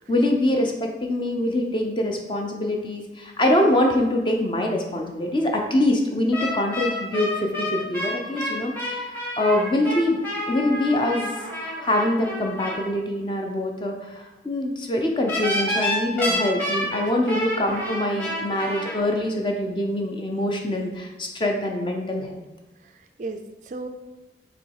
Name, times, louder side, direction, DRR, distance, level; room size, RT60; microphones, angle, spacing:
voice 1, 0.1-10.2 10.5-11.3 11.6-22.4, left 1 dB, 25° left, 2 dB, 0.7 m, -24 dB
sound 1, 6.3-12.8 15.3-18.9, left 1 dB, 10° left, 1.3 m, -29 dB
voice 2, 22.8-23.9, right 3 dB, 45° right, 7 dB, 0.4 m, -37 dB
6.7 x 3.1 x 4.7 m, 1.1 s
head